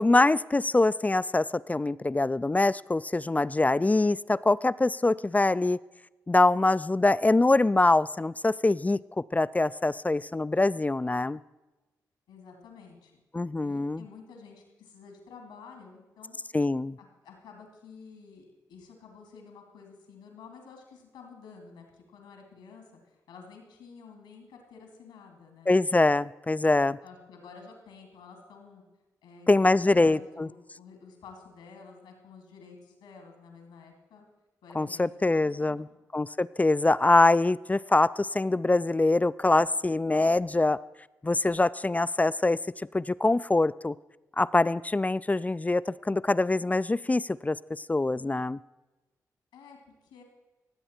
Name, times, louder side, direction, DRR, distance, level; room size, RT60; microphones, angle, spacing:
voice 1, 0.0-5.8 6.3-9.0 9.3-11.4 13.3-14.0 16.5-17.0 25.7-27.0 29.5-30.5 34.8-35.9 36.1-40.8 41.2-42.6 42.9-43.9 44.4-48.6, left 2 dB, 20° left, 17 dB, 0.3 m, -24 dB
voice 2, 12.3-13.2 13.6-16.4 17.0-25.7 27.0-28.8 29.2-34.3 34.6-35.9 49.5-50.2, left 5 dB, 90° left, 3 dB, 2.4 m, -50 dB
17.0 x 7.9 x 4.4 m, 1.1 s
supercardioid pair, 40°, 8 cm